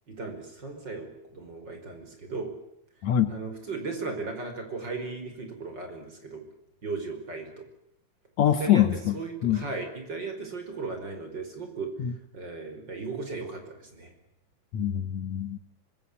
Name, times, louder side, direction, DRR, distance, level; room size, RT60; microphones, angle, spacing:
voice 1, 0.1-2.5 3.3-6.4 6.8-7.6 8.6-11.9 12.3-14.1, right 3 dB, 30° right, 6 dB, 5.6 m, -36 dB
voice 2, 3.0-3.3 8.4-9.1 9.4-9.6 12.0-12.1 14.7-15.6, left 10 dB, 60° left, 10 dB, 2.3 m, -24 dB
25.0 x 23.0 x 8.5 m, 0.78 s
omnidirectional pair, 3.8 m